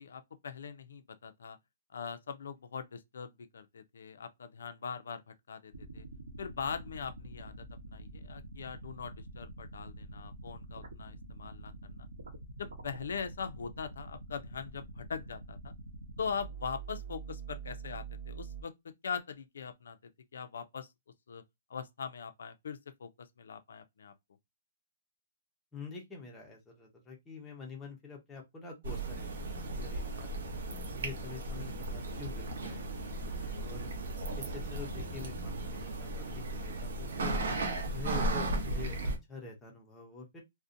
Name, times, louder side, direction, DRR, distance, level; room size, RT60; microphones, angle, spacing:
voice 1, 0.0-1.6 1.9-5.2 5.5-6.0 6.4-12.1 12.6-15.7 16.2-18.7 19.0-20.0 20.3-20.9 21.3-21.4 21.7-24.1, left 6 dB, 70° left, 0.4 m, -41 dB
sound 1, 5.7-18.6, right 3 dB, 85° right, 0.8 m, -46 dB
voice 2, 25.7-30.4 30.9-32.9 33.1-33.9 34.4-37.4 37.8-40.4, left 4 dB, 5° left, 0.5 m, -46 dB
sound 2, 28.8-39.2, right 2 dB, 55° right, 0.7 m, -36 dB
2.5 x 2.1 x 2.5 m
hypercardioid pair, 180°, 0 cm